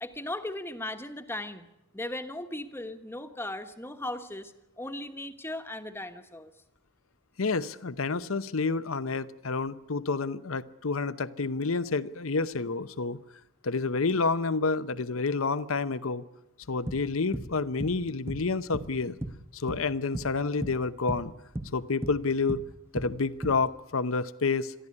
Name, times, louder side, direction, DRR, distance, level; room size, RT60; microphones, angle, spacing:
voice 1, 0.0-1.7 1.9-6.5, left 1 dB, 10° left, 8 dB, 1.2 m, -37 dB
voice 2, 7.4-13.2 13.6-16.2 16.7-19.1 19.5-21.3 21.7-22.6 22.9-24.7, left 4 dB, 80° left, 14 dB, 0.9 m, -29 dB
sound 1, 16.6-19.9 20.1-20.4 20.6-23.7, right 1 dB, 10° right, 1.1 m, -36 dB
22.5 x 14.0 x 9.9 m, 0.90 s
head